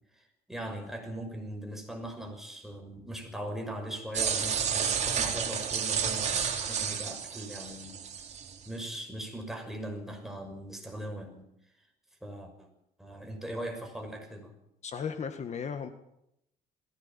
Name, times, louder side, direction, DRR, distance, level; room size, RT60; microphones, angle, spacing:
voice 1, 0.1-6.4 6.7-8.0 8.6-11.5 12.2-12.7 13.0-14.5, right 1 dB, ahead, 3 dB, 6.1 m, -40 dB
sound 1, 4.1-8.6, right 7 dB, 40° right, 4.1 m, -31 dB
voice 2, 14.8-15.9, left 6 dB, 40° left, 8 dB, 1.8 m, -35 dB
21.5 x 17.0 x 8.9 m, 0.81 s
cardioid pair, 110°, 17 cm